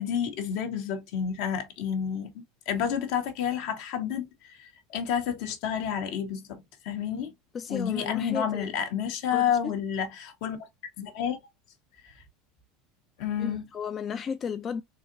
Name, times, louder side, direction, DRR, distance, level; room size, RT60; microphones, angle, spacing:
voice 1, 0.0-7.3 7.7-10.6 11.0-11.4 12.0-12.1 13.2-13.7, left 8 dB, 70° left, 1.1 m, -30 dB
voice 2, 7.5-8.7 9.3-9.7 13.4-14.8, left 6 dB, 35° left, 0.4 m, -34 dB
4.0 x 2.9 x 2.6 m
supercardioid pair, 105°, 0 cm